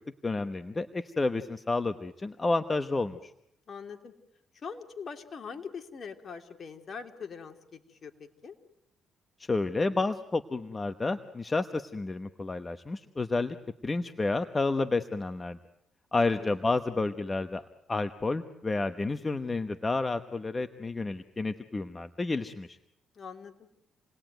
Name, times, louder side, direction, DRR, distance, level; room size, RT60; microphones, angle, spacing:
voice 1, 0.2-3.3 9.5-13.6 13.8-15.6 16.1-17.6 17.9-22.8, left 3 dB, 25° left, 9 dB, 1.1 m, -30 dB
voice 2, 3.7-4.1 4.5-8.6 16.4-16.8 23.1-23.7, left 6 dB, 50° left, 5 dB, 3.0 m, -43 dB
29.0 x 20.0 x 9.2 m, 0.78 s
cardioid pair, 90°, 0 cm